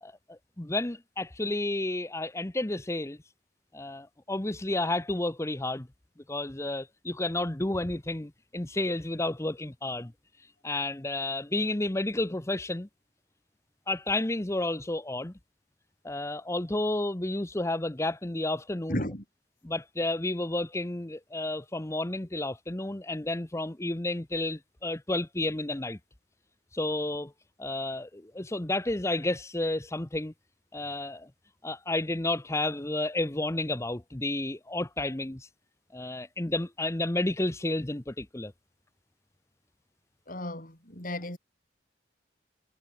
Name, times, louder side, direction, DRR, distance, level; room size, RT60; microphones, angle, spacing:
voice 1, 0.0-3.2 3.7-5.9 6.3-10.1 10.6-12.9 13.9-15.3 16.0-19.0 19.6-26.0 26.7-27.3 27.6-30.3 30.7-31.3 31.6-35.5 35.9-38.5, left 2 dB, 15° left, 0.8 m, -31 dB
voice 2, 18.9-19.2 40.3-41.4, left 1 dB, 45° left, 6.2 m, -34 dB
head